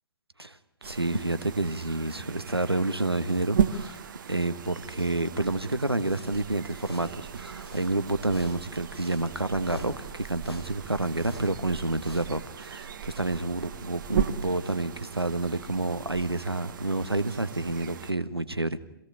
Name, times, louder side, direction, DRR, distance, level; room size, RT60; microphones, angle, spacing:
sound 1, 0.8-18.1, right 8 dB, 55° right, 1.4 m, -36 dB
voice 1, 0.8-4.0 4.3-18.8, right 2 dB, 90° right, 12 dB, 1.4 m, -29 dB
sound 2, 6.0-12.4, left 1 dB, 85° left, 5.4 m, -47 dB
26.5 x 17.0 x 9.9 m, 0.80 s
figure-of-eight pair, 115°, 13 cm